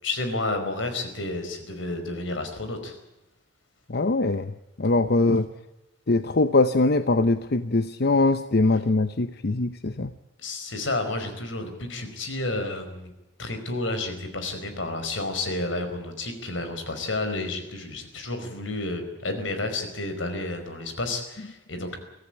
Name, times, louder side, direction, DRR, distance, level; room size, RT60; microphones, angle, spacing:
voice 1, 0.0-3.0 10.4-13.1 13.4-22.0, left 2 dB, 85° left, 8 dB, 4.8 m, -31 dB
voice 2, 3.9-4.5 4.8-5.5 6.1-10.1, left 2 dB, 55° left, 11 dB, 0.8 m, -22 dB
24.0 x 16.0 x 8.7 m, 0.95 s
head